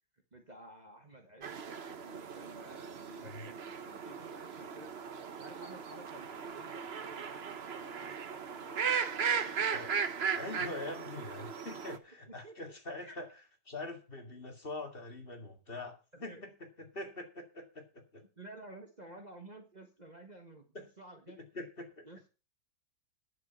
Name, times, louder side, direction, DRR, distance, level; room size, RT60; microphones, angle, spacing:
voice 1, 0.3-1.6 2.0-4.9 5.3-9.6 11.5-11.6 12.3-12.5 13.0-13.2 16.1-16.4 18.3-20.7 21.0-21.4 22.0-22.3, right 1 dB, 30° right, 4 dB, 1.5 m, -53 dB
Mallards at the bay, 1.4-12.0, right 6 dB, 45° right, 1.1 m, -37 dB
voice 2, 10.3-13.3 13.7-16.5 16.9-18.2 20.7-20.8 21.5-22.0, left 2 dB, 35° left, 4 dB, 2.1 m, -43 dB
11.0 x 7.7 x 5.7 m, 0.33 s
omnidirectional pair, 1.6 m